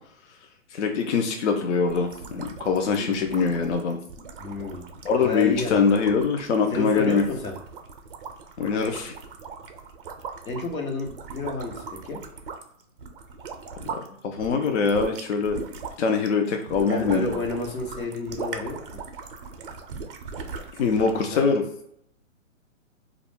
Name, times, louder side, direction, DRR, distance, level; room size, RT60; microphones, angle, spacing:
voice 1, 0.7-4.0 5.0-7.2 8.6-9.1 13.9-15.6 16.0-17.3 20.8-21.6, left 5 dB, 60° left, 5 dB, 0.5 m, -23 dB
sound 1, 1.8-14.1 14.4-21.3, right 5 dB, 45° right, 0.4 m, -39 dB
voice 2, 4.4-4.8 5.2-5.8 6.7-7.5 10.4-12.2 16.9-18.7 21.1-21.5, left 3 dB, 90° left, 1 dB, 1.1 m, -31 dB
2.3 x 2.1 x 3.5 m, 0.73 s
hypercardioid pair, 145°, 40 cm